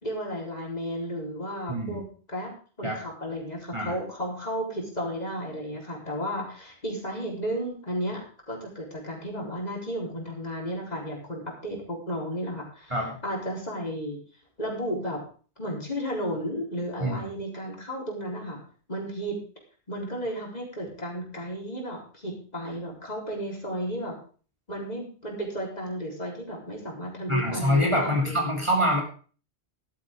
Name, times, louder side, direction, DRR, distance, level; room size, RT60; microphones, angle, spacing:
voice 1, 0.0-2.5 2.8-13.0 13.2-14.2 14.6-15.2 15.6-18.6 18.9-19.4 19.9-24.2 24.7-28.5, equal, 40° left, -1 dB, 4.3 m, -33 dB
voice 2, 1.7-2.0 2.8-3.0 3.7-3.9 12.9-13.2 17.0-17.2 27.3-29.0, equal, 30° right, 0 dB, 3.0 m, -25 dB
14.5 x 12.5 x 3.7 m, 0.39 s
omnidirectional pair, 1.1 m